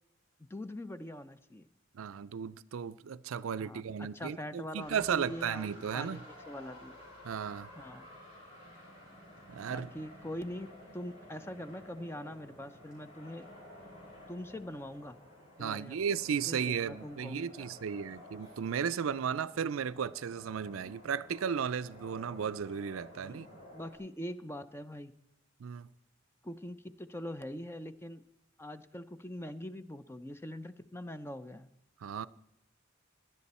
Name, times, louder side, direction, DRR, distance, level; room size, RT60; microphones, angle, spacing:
voice 1, 0.5-1.7 3.6-5.7 5.9-6.9 7.8-8.1 9.7-10.7 10.9-13.5 14.3-15.2 15.6-16.0 16.5-17.7 20.8-20.9 23.2-25.1 26.4-28.2 28.6-31.7, left 1 dB, 10° left, 0.5 m, -43 dB
voice 2, 1.9-6.2 7.2-7.7 9.5-9.9 15.6-23.5 25.6-25.9 32.0-32.3, right 7 dB, 85° right, 0.4 m, -35 dB
sound 1, 4.8-24.0, left 1 dB, 35° left, 6.2 m, -53 dB
17.5 x 11.0 x 4.2 m
head